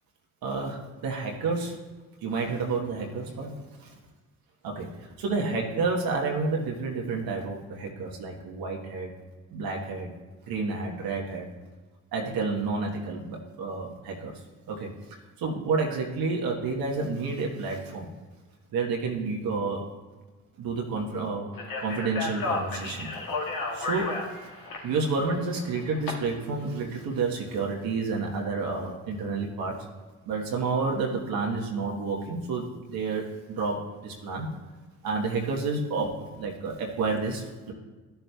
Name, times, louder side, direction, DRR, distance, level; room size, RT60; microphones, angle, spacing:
voice 1, 0.4-1.8 2.2-3.5 3.8-3.9 4.6-4.9 5.2-9.1 9.5-10.1 10.5-11.5 12.1-14.3 14.7-14.9 15.4-18.1 18.7-19.8 20.6-21.5 21.8-23.1 23.4-24.5 24.8-29.7 30.3-34.5 35.0-37.7, right 4 dB, 65° right, -1 dB, 1.3 m, -30 dB
Speech, 21.5-26.1, left 3 dB, 60° left, 1.9 m, -33 dB
12.5 x 6.8 x 2.3 m, 1.3 s
hypercardioid pair, 45°, 38 cm